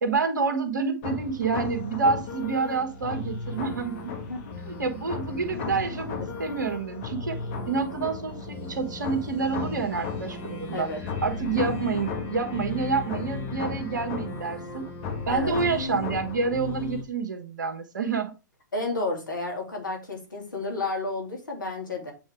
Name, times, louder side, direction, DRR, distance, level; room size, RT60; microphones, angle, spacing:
voice 1, 0.0-4.1 4.7-10.9 11.2-14.9 15.3-18.3, right 4 dB, 70° right, 6 dB, 1.3 m, -28 dB
sound 1, 1.0-17.0, left 4 dB, 45° left, 1.7 m, -34 dB
voice 2, 4.1-4.4 10.7-11.0 15.3-15.5 18.7-22.1, left 2 dB, 80° left, 1 dB, 2.5 m, -31 dB
7.8 x 3.8 x 3.5 m, 0.30 s
figure-of-eight pair, 110°, 10 cm